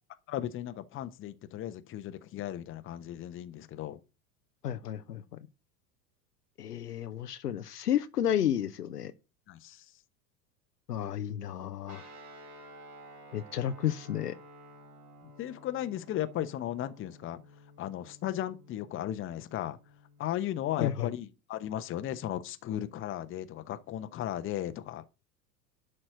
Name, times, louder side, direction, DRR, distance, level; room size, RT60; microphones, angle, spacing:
voice 1, 0.3-4.0 9.5-9.9 15.4-17.4 17.8-19.8 20.2-25.0, left 12 dB, 25° left, 0.9 m, -36 dB
voice 2, 4.6-5.2 6.6-9.1 10.9-12.0 13.3-14.3 20.8-21.1, left 10 dB, 70° left, 0.8 m, -31 dB
Guitar, 11.9-20.4, right 1 dB, 35° right, 3.3 m, -53 dB
11.5 x 4.3 x 6.5 m
figure-of-eight pair, 80°, 49 cm